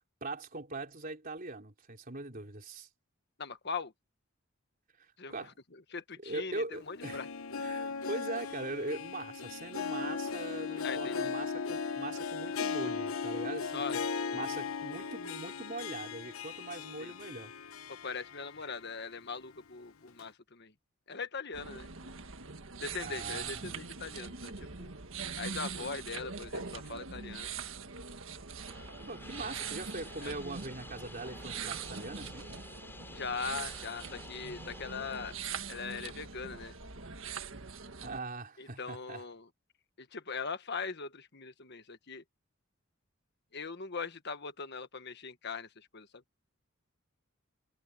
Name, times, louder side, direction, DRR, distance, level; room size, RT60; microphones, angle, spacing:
voice 1, 0.2-2.9 5.0-5.5 6.2-7.3 7.6-14.0 14.3-17.5 23.0-23.7 29.1-32.5 38.0-39.2, right 2 dB, 45° right, 3.7 m, -41 dB
voice 2, 3.4-3.9 5.2-7.3 10.8-11.3 13.7-14.0 17.0-17.1 17.9-20.7 21.1-21.9 22.8-24.9 25.4-27.5 30.2-30.3 33.1-35.3 35.7-36.7 38.6-39.5 40.0-42.2 43.5-46.2, left 5 dB, 55° left, 1.4 m, -41 dB
Harp, 6.7-18.9 19.2-19.3 20.2-20.3, left 5 dB, 90° left, 1.0 m, -37 dB
sound 1, 21.5-38.2, right 5 dB, 70° right, 1.7 m, -42 dB
sound 2, 28.6-35.3, left 2 dB, 10° left, 7.7 m, -50 dB
head